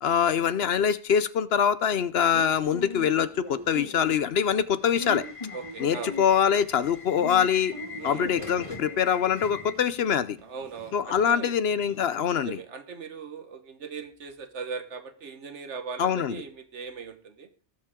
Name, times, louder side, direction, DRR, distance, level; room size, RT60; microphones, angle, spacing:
voice 1, 0.0-5.2 5.8-7.7 8.0-10.4 10.9-12.6 16.0-16.4, left 8 dB, 65° left, 14 dB, 0.9 m, -24 dB
Subway metro underground / Alarm, 2.3-12.1, left 3 dB, 30° left, 1.3 m, -40 dB
voice 2, 5.5-6.1 8.0-8.3 10.4-11.5 12.4-17.5, right 5 dB, 85° right, 8 dB, 1.5 m, -39 dB
18.5 x 7.4 x 3.6 m, 0.39 s
omnidirectional pair, 1.2 m